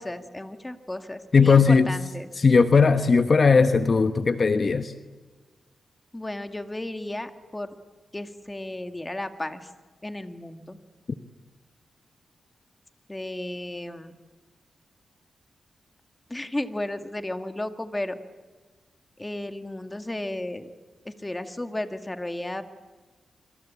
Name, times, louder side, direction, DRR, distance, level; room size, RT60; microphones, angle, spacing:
voice 1, 0.0-2.3 6.1-7.8 8.1-9.7 10.0-10.8 13.1-14.1 16.3-18.2 19.2-20.7 21.1-22.6, left 1 dB, 15° left, 8 dB, 2.0 m, -33 dB
voice 2, 1.3-1.9 2.4-4.9, left 5 dB, 45° left, 9 dB, 1.2 m, -18 dB
26.5 x 25.5 x 8.5 m, 1.3 s
cardioid pair, 95°, 0 cm